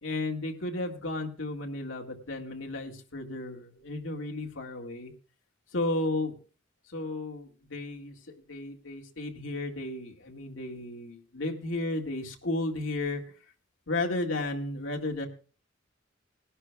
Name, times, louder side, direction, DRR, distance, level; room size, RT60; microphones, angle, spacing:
voice 1, 0.0-5.1 5.7-6.4 6.9-13.2 13.9-15.3, left 2 dB, 80° left, 1 dB, 1.9 m, -33 dB
20.5 x 11.0 x 2.3 m, 0.37 s
head